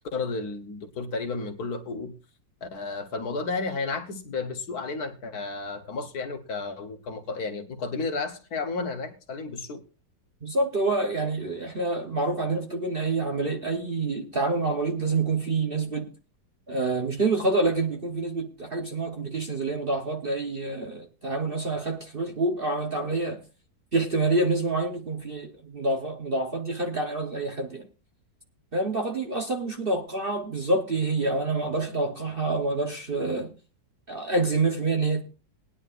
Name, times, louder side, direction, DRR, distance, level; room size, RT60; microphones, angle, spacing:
voice 1, 0.1-2.1 2.6-9.8, left 3 dB, 60° left, 1.6 m, -32 dB
voice 2, 10.4-16.1 16.7-23.4 23.9-27.9 28.7-33.5 34.1-35.2, right 3 dB, 40° right, 1.0 m, -27 dB
19.5 x 10.0 x 2.5 m
omnidirectional pair, 2.0 m